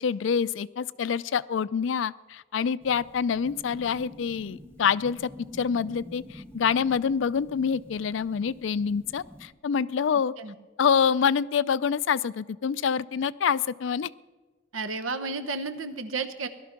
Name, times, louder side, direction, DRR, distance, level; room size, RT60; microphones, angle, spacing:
voice 1, 0.0-10.3 10.8-14.1, left 6 dB, 65° left, 19 dB, 0.4 m, -26 dB
sound 1, 2.8-9.5, left 1 dB, 15° right, 1.3 m, -47 dB
voice 2, 10.1-10.5 14.7-16.5, right 3 dB, 85° right, 10 dB, 1.1 m, -32 dB
18.0 x 12.0 x 5.9 m, 1.3 s
head